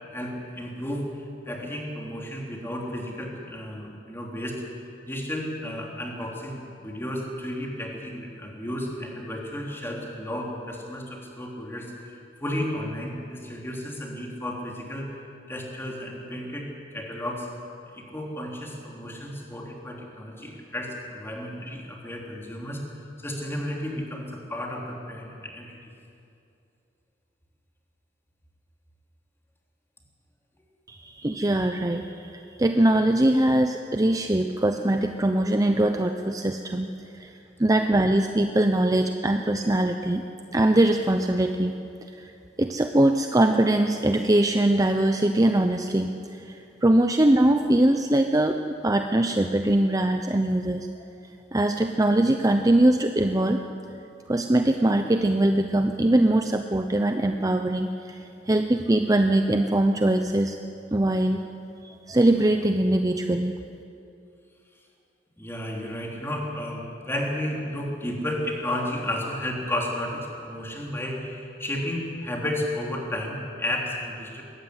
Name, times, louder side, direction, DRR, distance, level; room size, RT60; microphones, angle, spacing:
voice 1, 0.1-15.1 15.5-17.5 17.9-22.8 23.2-25.8 65.4-74.4, left 1 dB, 15° left, -1 dB, 3.5 m, -33 dB
voice 2, 30.9-36.9 37.1-37.3 37.6-40.2 40.5-41.7 42.2-42.3 42.6-50.9 51.5-53.6 54.3-58.2 58.5-60.6 60.9-61.4 61.8-63.6, right 1 dB, 20° right, 6 dB, 0.7 m, -22 dB
21.0 x 15.0 x 9.8 m, 2.6 s
head